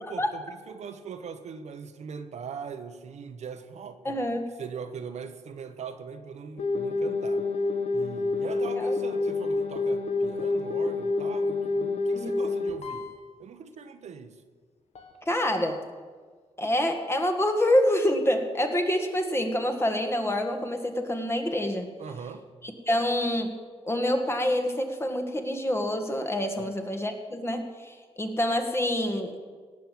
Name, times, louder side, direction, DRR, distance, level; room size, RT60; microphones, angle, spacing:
voice 1, 0.0-4.3 4.6-7.5 7.9-13.1 13.4-14.4 22.0-22.5 26.6-26.8, right 6 dB, 75° right, 8 dB, 1.1 m, -41 dB
voice 2, 4.1-4.4 8.8-8.9 12.2-12.3 15.3-15.8 16.6-21.9 22.9-23.5 23.8-29.3, left 1 dB, 20° left, 5 dB, 1.8 m, -26 dB
sound 1, 6.6-13.2 15.0-15.1, left 3 dB, 65° left, 1.8 m, -28 dB
18.0 x 7.6 x 7.7 m, 1.6 s
cardioid pair, 95°, 12 cm